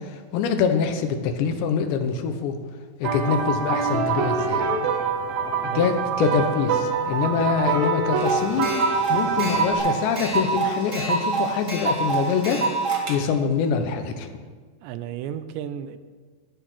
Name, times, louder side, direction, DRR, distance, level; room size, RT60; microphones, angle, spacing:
voice 1, 0.0-2.6 3.0-4.7 5.6-8.7 9.1-12.6 13.1-14.3, left 6 dB, 85° left, 7 dB, 3.4 m, -24 dB
sound 1, 3.0-9.8, right 5 dB, 70° right, 2.7 m, -25 dB
voice 2, 5.6-5.9 14.8-16.0, right 10 dB, 85° right, 12 dB, 3.0 m, -33 dB
sound 2, 8.1-13.2, right 4 dB, 35° right, 1.2 m, -26 dB
20.5 x 8.1 x 6.3 m, 1.5 s
omnidirectional pair, 4.9 m